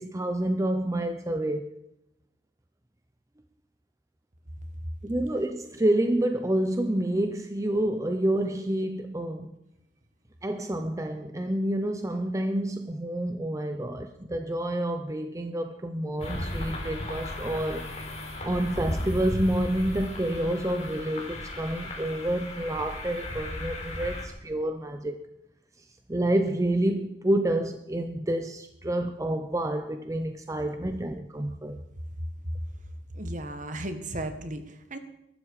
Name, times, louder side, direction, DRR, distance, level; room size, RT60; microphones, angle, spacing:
voice 1, 0.0-1.7 5.0-9.5 10.4-17.9 18.4-25.2 26.1-31.8, right 1 dB, 20° right, 0.8 m, -28 dB
sound 1, 16.2-24.2, left 1 dB, 40° left, 4.1 m, -35 dB
voice 2, 33.1-35.0, right 1 dB, 45° right, 1.8 m, -35 dB
22.0 x 12.5 x 4.9 m
head